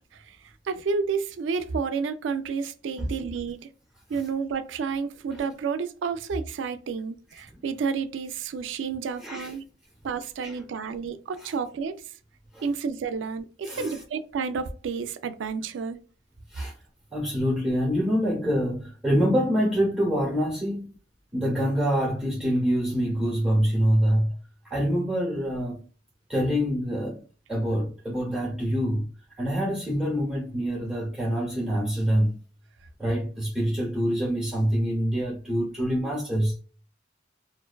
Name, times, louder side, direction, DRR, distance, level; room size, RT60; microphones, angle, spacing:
voice 1, 0.7-3.7 4.1-9.6 10.0-12.0 12.6-16.0, right 5 dB, 75° right, 0.3 m, -30 dB
voice 2, 9.2-9.5 10.4-10.6 11.4-11.5 12.5-12.7 13.6-14.0 16.5-16.7 17.1-20.9 21.3-24.4 24.6-25.8 26.3-27.2 27.5-29.1 29.4-32.3 33.0-36.6, equal, 5° right, 0.7 m, -25 dB
2.5 x 2.2 x 2.2 m
head